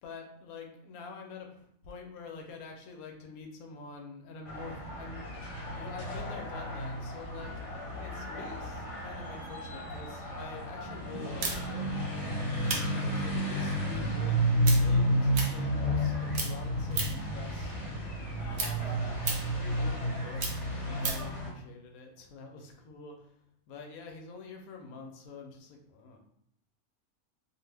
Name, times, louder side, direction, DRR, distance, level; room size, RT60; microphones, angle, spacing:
voice 1, 0.0-5.3 5.7-12.1 12.8-17.7 18.5-18.9 19.7-23.3 23.7-26.2, left 4 dB, 75° left, 3 dB, 1.0 m, -46 dB
sound 1, 4.5-21.5, equal, 60° left, 1.0 m, -32 dB
sound 2, 11.4-16.1 16.3-17.3 17.7-21.3, right 4 dB, 60° right, 0.8 m, -36 dB
2.7 x 2.4 x 3.3 m, 0.71 s
omnidirectional pair, 1.6 m